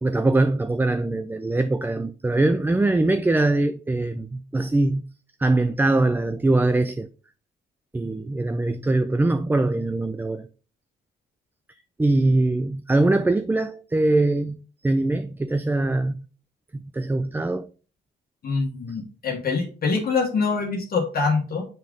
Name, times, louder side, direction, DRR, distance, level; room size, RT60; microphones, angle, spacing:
voice 1, 0.0-5.0 5.4-7.1 7.9-10.5 12.0-16.2 16.7-17.7, right 2 dB, 10° right, 0.3 m, -22 dB
voice 2, 18.4-21.6, left 4 dB, 50° left, 1.5 m, -24 dB
7.6 x 3.7 x 3.6 m
cardioid pair, 90°, 20 cm